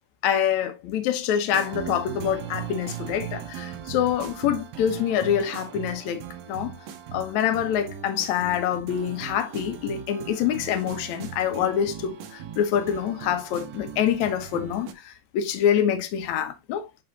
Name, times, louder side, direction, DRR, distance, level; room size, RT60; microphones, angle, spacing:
voice 1, 0.2-6.2 6.5-6.7 7.1-16.9, left 9 dB, 75° left, 1.7 m, -26 dB
sound 1, 1.5-14.9, right 9 dB, 70° right, 2.4 m, -39 dB
10.5 x 3.6 x 2.8 m
omnidirectional pair, 4.9 m